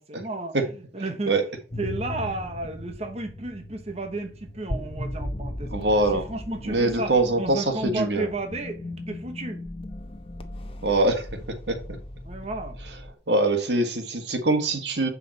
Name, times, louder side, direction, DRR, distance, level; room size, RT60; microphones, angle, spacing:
voice 1, 0.0-1.4 1.8-5.7 6.1-9.6 12.2-12.8, right 2 dB, 35° right, 1.1 m, -33 dB
sound 1, 1.7-13.1, left 1 dB, 30° left, 0.9 m, -37 dB
voice 2, 5.7-6.2 6.6-8.2 10.8-11.3 11.7-11.8 13.3-15.1, right 2 dB, 75° right, 1.6 m, -23 dB
7.7 x 5.8 x 4.1 m
head